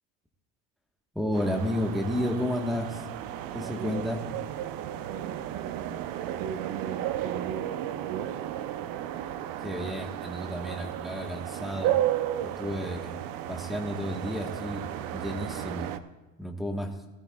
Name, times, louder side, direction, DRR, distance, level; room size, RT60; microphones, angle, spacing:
voice 1, 1.1-3.0 3.5-4.2 9.6-12.0 12.4-13.2 13.5-15.9 16.4-16.9, equal, ahead, 1 dB, 1.3 m, -32 dB
sound 1, 1.3-16.0, right 12 dB, 55° right, 0.7 m, -34 dB
voice 2, 3.5-4.1 5.1-7.8 8.1-8.4, right 8 dB, 85° right, 9 dB, 1.1 m, -38 dB
18.0 x 13.0 x 2.3 m, 1.1 s
cardioid pair, 135°, 41 cm